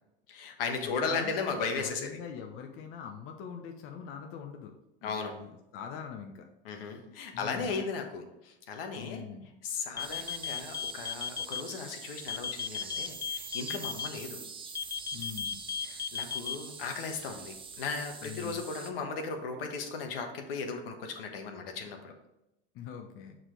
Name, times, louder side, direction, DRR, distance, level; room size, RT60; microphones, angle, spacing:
voice 1, 0.3-2.2 5.0-5.3 6.6-9.2 9.6-14.4 15.8-22.1, left 4 dB, 75° left, 4 dB, 1.2 m, -36 dB
voice 2, 0.8-1.4 1.8-4.7 5.0-6.5 6.9-7.0 7.3-7.8 8.9-9.5 15.1-15.6 18.2-18.7 22.7-23.4, left 7 dB, 45° left, 4 dB, 0.9 m, -43 dB
sound 1, 9.9-11.6 12.3-14.1 14.8-16.6, left 7 dB, 15° left, 0.3 m, -35 dB
sound 2, 10.0-18.9, right 4 dB, 20° right, 0.7 m, -45 dB
6.3 x 4.1 x 4.6 m, 0.90 s
hypercardioid pair, 100°, 29 cm